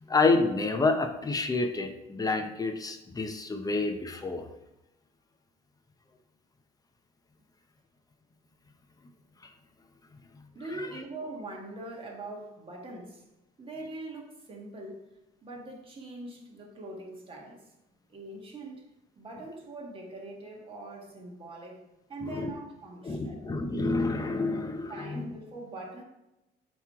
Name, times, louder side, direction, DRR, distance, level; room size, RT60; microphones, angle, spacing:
voice 1, 0.0-4.5 10.8-10.9 22.3-22.5 23.0-25.2, left 3 dB, 20° left, 6 dB, 0.6 m, -28 dB
voice 2, 10.5-13.2 13.6-15.1 15.4-17.7 18.1-18.9 19.2-23.4 24.9-26.0, right 2 dB, 30° right, -1 dB, 1.6 m, -42 dB
7.3 x 3.1 x 4.7 m, 0.94 s
cardioid pair, 110°, 17 cm